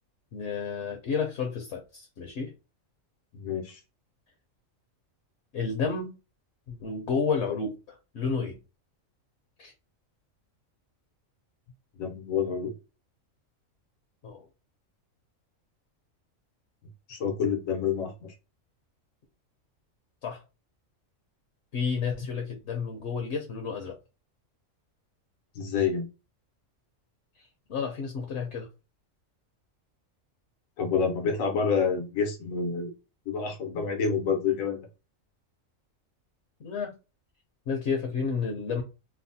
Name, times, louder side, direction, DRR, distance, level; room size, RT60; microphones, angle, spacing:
voice 1, 0.3-2.5 5.5-6.1 6.7-8.6 9.6-9.7 14.2-14.4 20.2-20.4 21.7-24.0 27.7-28.7 36.6-36.9 37.7-38.8, left 5 dB, 65° left, 0.8 m, -31 dB
voice 2, 3.3-3.8 12.0-12.7 17.1-18.3 25.5-26.1 30.8-32.9 33.3-34.9, left 6 dB, 90° left, 1.1 m, -28 dB
3.2 x 2.0 x 2.6 m
omnidirectional pair, 1.4 m